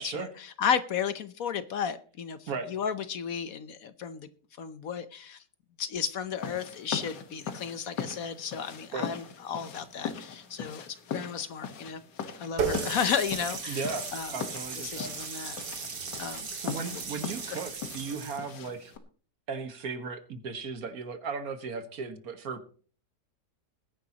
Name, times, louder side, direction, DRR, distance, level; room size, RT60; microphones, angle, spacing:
voice 1, 0.0-4.3 4.6-5.4 5.8-12.0 12.4-14.3 14.8-15.6 16.2-16.5 16.9-17.0 17.5-17.6, left 7 dB, 60° left, 13 dB, 1.1 m, -33 dB
sound 1, 6.4-19.0, left 7 dB, 85° left, 1.9 m, -40 dB
Water tap faucet, 12.6-18.4, right 5 dB, 80° right, 2.5 m, -36 dB
voice 2, 13.7-14.1 14.3-15.1 16.6-18.9 19.5-22.7, right 5 dB, 60° right, 9 dB, 1.7 m, -36 dB
20.5 x 10.0 x 2.9 m, 0.41 s
omnidirectional pair, 1.8 m